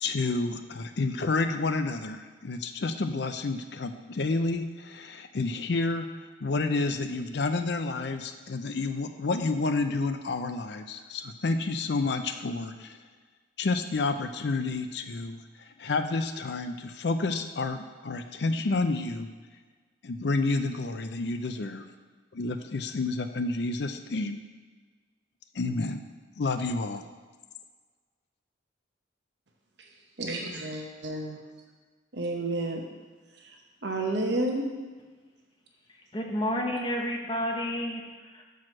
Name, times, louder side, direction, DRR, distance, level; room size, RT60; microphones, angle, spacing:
voice 1, 0.0-6.1 6.4-13.0 13.6-15.4 15.8-19.3 20.0-21.8 22.3-24.4 25.5-26.0 26.4-27.0, left 3 dB, 60° left, 8 dB, 0.5 m, -29 dB
voice 2, 30.2-31.3 32.2-32.8 33.8-34.7, right 2 dB, 60° right, 1 dB, 0.9 m, -30 dB
voice 3, 36.1-38.4, left 1 dB, 25° left, 0 dB, 0.9 m, -30 dB
6.1 x 4.7 x 5.9 m, 1.4 s
head